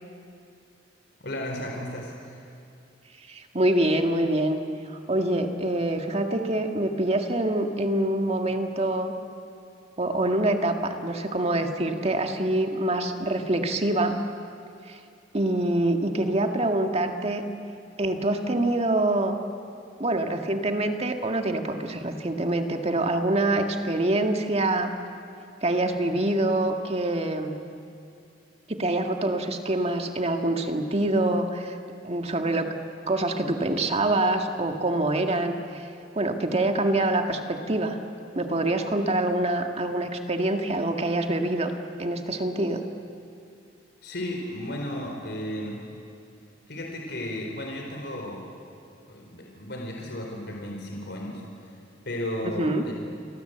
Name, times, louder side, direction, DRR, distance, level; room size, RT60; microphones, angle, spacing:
voice 1, 1.2-2.4 44.0-45.8 46.7-48.4 49.1-51.7 52.1-52.9, left 1 dB, 65° left, 1 dB, 4.0 m, -34 dB
voice 2, 3.3-4.6 4.9-9.1 10.0-14.2 14.9-15.0 15.3-17.4 18.0-19.4 20.0-24.9 25.6-27.6 28.7-31.8 32.0-32.7 33.1-35.9 36.1-38.0 38.3-41.7 42.0-42.8 52.6-52.8, right 1 dB, 35° right, 5 dB, 1.9 m, -25 dB
30.0 x 24.0 x 8.0 m, 2.5 s
head